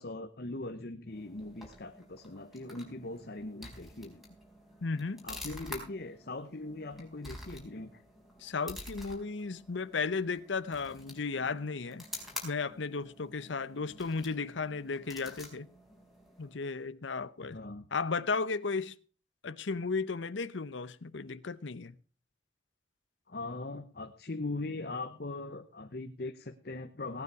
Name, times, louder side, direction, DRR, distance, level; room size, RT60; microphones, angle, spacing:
voice 1, 0.0-4.2 5.2-8.0 17.4-17.9 23.3-27.2, left 2 dB, 55° left, 1.0 m, -40 dB
sound 1, 1.1-16.7, left 1 dB, ahead, 4.2 m, -49 dB
voice 2, 4.8-5.3 8.4-12.0 12.4-15.7 16.4-17.6 17.9-18.9 19.4-21.9, left 4 dB, 75° left, 0.8 m, -34 dB
18.0 x 9.6 x 4.8 m
head